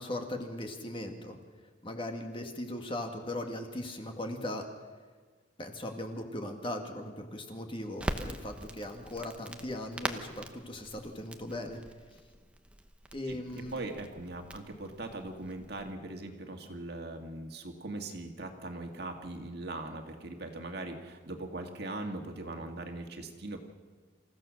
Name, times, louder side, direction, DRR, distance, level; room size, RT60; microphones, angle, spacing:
voice 1, 0.0-1.4 1.8-4.7 5.6-11.8 12.1-12.2 13.1-13.8, left 1 dB, 25° left, 4 dB, 1.8 m, -38 dB
Crackle, 8.0-15.9, right 1 dB, 5° right, 0.9 m, -42 dB
voice 2, 13.7-23.6, right 2 dB, 55° right, 4 dB, 2.0 m, -40 dB
27.5 x 15.5 x 6.4 m, 1.5 s
head